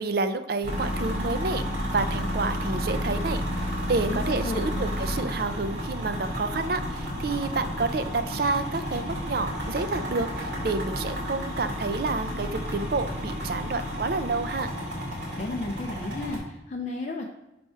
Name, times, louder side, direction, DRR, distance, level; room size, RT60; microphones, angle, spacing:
voice 1, 0.0-14.7, right 3 dB, 55° right, 10 dB, 0.5 m, -29 dB
sound 1, 0.6-16.4, equal, 75° right, 2.2 m, -31 dB
voice 2, 4.1-4.8 15.4-17.2, left 2 dB, 40° left, -1 dB, 0.5 m, -33 dB
4.6 x 4.3 x 5.6 m, 0.92 s
head